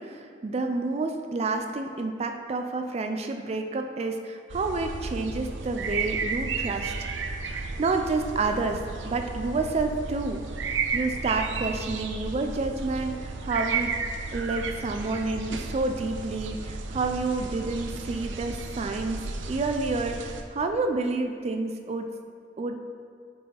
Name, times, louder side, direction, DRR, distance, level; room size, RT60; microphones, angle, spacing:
voice 1, 0.0-7.1 7.4-13.9 14.3-22.1 22.6-22.8, right 3 dB, 35° right, 5 dB, 0.3 m, -29 dB
sound 1, 4.5-20.4, right 4 dB, 90° right, 0.6 m, -33 dB
8.4 x 4.8 x 3.3 m, 2.2 s
head